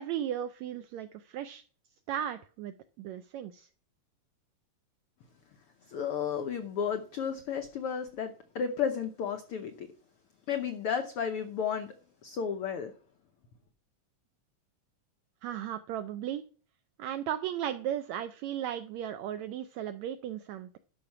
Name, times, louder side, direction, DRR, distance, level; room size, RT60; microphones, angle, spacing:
voice 1, 0.0-1.6 2.1-3.7 15.4-16.4 17.0-20.8, right 10 dB, 85° right, 11 dB, 1.6 m, -36 dB
voice 2, 5.9-9.9 10.5-11.9 12.2-12.9, left 7 dB, 85° left, 8 dB, 1.2 m, -33 dB
12.0 x 5.7 x 5.8 m, 0.41 s
omnidirectional pair, 3.8 m